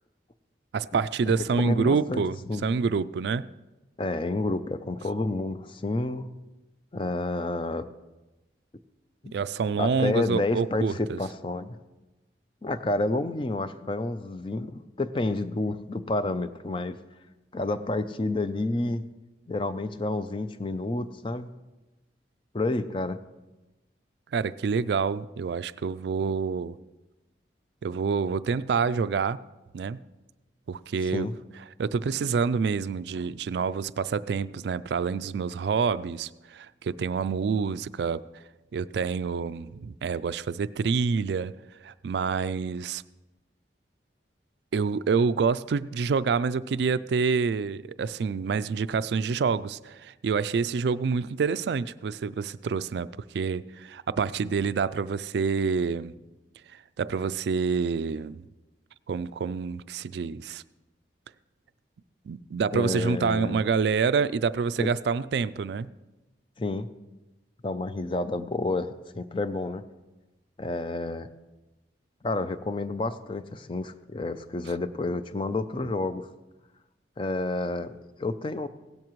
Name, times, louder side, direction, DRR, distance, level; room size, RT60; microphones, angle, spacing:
voice 1, 0.7-2.4 2.6-3.5 9.3-11.2 24.3-26.8 27.8-29.4 29.7-30.0 30.7-31.3 31.8-38.2 38.7-41.5 41.8-43.0 44.7-53.1 53.3-56.1 57.0-58.5 59.1-60.6 62.3-65.9, right 5 dB, 70° right, 0.3 m, -27 dB
voice 2, 1.3-2.2 2.5-2.7 4.0-6.3 6.9-7.9 9.2-9.3 9.8-11.7 12.6-17.0 17.5-19.1 19.5-21.5 22.5-23.2 31.1-31.3 62.7-63.6 64.8-64.9 66.6-66.9 67.6-69.8 70.6-71.3 72.2-76.3 77.2-78.7, left 2 dB, 30° left, 0.4 m, -29 dB
16.5 x 12.5 x 3.1 m
head